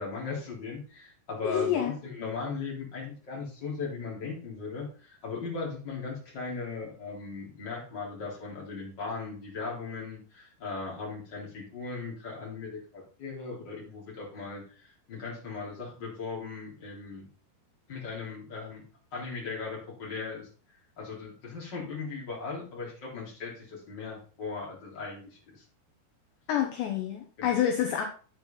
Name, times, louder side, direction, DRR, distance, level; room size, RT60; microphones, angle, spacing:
voice 1, 0.0-17.3 17.9-18.8 19.1-20.5 21.0-25.6 27.4-27.5, left 4 dB, 25° left, -3 dB, 3.5 m, -38 dB
voice 2, 1.4-1.9 26.5-28.0, left 10 dB, 75° left, 3 dB, 2.9 m, -28 dB
8.9 x 8.2 x 3.8 m, 0.38 s
omnidirectional pair, 5.7 m